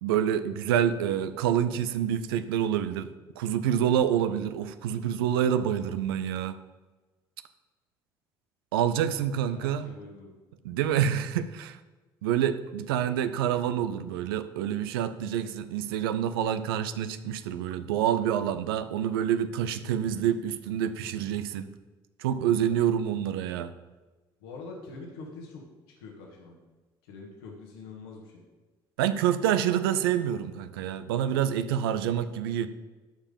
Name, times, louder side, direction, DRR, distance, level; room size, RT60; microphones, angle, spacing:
voice 1, 0.0-3.1 3.4-6.6 8.7-9.9 10.6-11.8 12.2-21.7 22.2-23.7 29.0-32.7, right 9 dB, 80° right, 12 dB, 0.6 m, -27 dB
voice 2, 9.0-10.3 22.3-22.8 24.4-25.6 26.0-26.6 27.0-28.4, left 3 dB, 80° left, 0 dB, 1.8 m, -45 dB
12.5 x 5.1 x 5.3 m, 1.2 s
hypercardioid pair, 55°, 12 cm